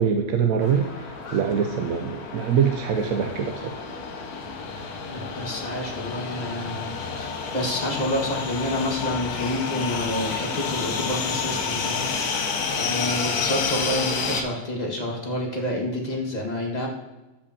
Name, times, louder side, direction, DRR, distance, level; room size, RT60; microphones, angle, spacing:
voice 1, 0.0-3.9, right 7 dB, 75° right, 4 dB, 1.0 m, -24 dB
sound 1, 0.6-14.4, left 5 dB, 85° left, 1.4 m, -30 dB
voice 2, 5.1-12.1 12.7-16.9, left 1 dB, 30° left, -1 dB, 1.7 m, -29 dB
14.5 x 5.2 x 2.8 m, 1.1 s
omnidirectional pair, 1.6 m